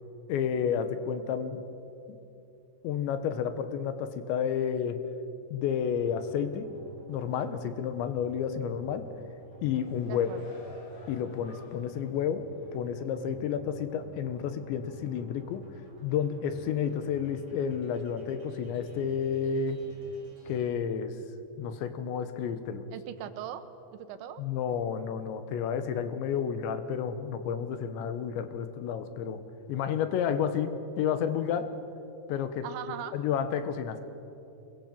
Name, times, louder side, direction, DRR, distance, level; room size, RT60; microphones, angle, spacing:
voice 1, 0.3-1.6 2.1-2.2 2.8-5.0 5.5-6.8 7.1-9.1 9.6-10.3 11.1-15.7 16.0-19.8 20.5-21.2 21.6-22.9 24.4-29.4 29.7-31.7 32.3-34.0, left 7 dB, 80° left, 10 dB, 3.5 m, -31 dB
sound 1, 5.8-20.6, right 1 dB, 25° right, 6.2 m, -52 dB
sound 2, 9.4-12.2 12.6-12.7, left 1 dB, 65° left, 6.8 m, -51 dB
voice 2, 10.1-10.4 22.9-23.6 23.9-24.4 32.6-33.2, right 11 dB, 90° right, 10 dB, 3.5 m, -39 dB
24.5 x 22.0 x 7.7 m, 2.8 s
omnidirectional pair, 5.1 m